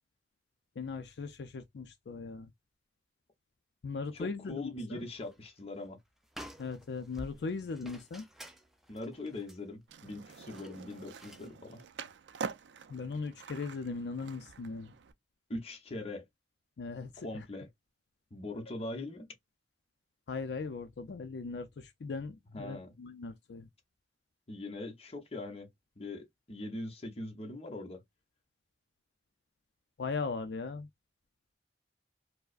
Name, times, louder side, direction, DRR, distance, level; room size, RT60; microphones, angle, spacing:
voice 1, 0.8-2.5 3.8-5.1 6.6-8.3 12.9-14.9 16.8-17.5 20.3-23.7 30.0-30.9, left 4 dB, 70° left, 0.4 m, -39 dB
voice 2, 4.1-6.0 8.9-11.8 15.5-16.2 17.2-17.7 18.3-19.3 22.5-22.9 24.5-25.7 26.0-28.0, left 2 dB, 35° left, 0.9 m, -41 dB
sound 1, 5.0-5.5 5.8-5.9 6.2-11.5, equal, ahead, 0.5 m, -51 dB
Skateboard, 9.9-15.1, right 5 dB, 85° right, 0.4 m, -45 dB
4.5 x 2.1 x 2.4 m
head